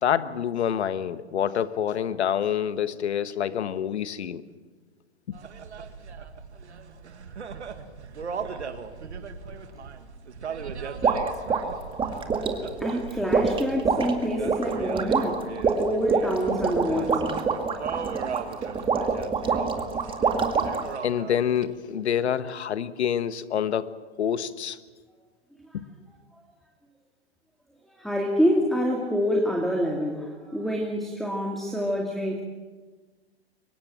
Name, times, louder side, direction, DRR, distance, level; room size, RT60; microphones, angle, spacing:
voice 1, 0.0-4.4 21.0-24.8 25.7-25.8, left 9 dB, 80° left, 1.3 m, -27 dB
sound 1, 5.3-21.6, right 6 dB, 85° right, 2.1 m, -39 dB
sound 2, 11.0-20.9, right 5 dB, 15° right, 2.1 m, -26 dB
voice 2, 12.8-15.5 15.8-17.3 27.9-32.4, equal, ahead, 2.6 m, -27 dB
24.0 x 21.0 x 7.5 m
hypercardioid pair, 120°, 33 cm